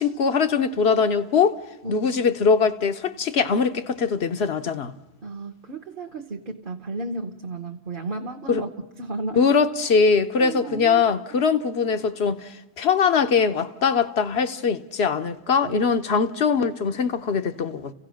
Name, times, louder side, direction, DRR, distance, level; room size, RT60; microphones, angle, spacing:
voice 1, 0.0-1.6 1.9-4.9 8.5-8.6 9.4-17.9, left 5 dB, 75° left, 1.2 m, -22 dB
voice 2, 1.8-2.5 5.2-8.7 9.0-9.5 10.4-11.0 11.3-11.5 15.6-15.9, right 3 dB, 55° right, 1.2 m, -33 dB
30.0 x 16.0 x 6.3 m
omnidirectional pair, 1.1 m